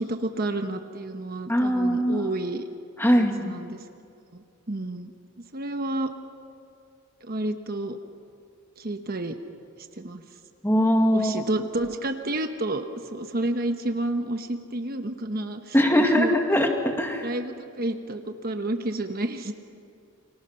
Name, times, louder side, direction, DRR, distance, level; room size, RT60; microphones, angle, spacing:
voice 1, 0.0-2.6 3.2-3.8 4.3-5.1 5.5-6.1 7.2-8.0 8.8-9.4 10.0-10.2 11.1-16.3 17.2-19.5, right 2 dB, 45° right, 6 dB, 1.1 m, -30 dB
voice 2, 1.5-2.3 3.0-3.5 10.6-11.4 15.7-17.3, equal, 10° left, 3 dB, 1.9 m, -21 dB
29.0 x 25.5 x 5.8 m, 2.4 s
head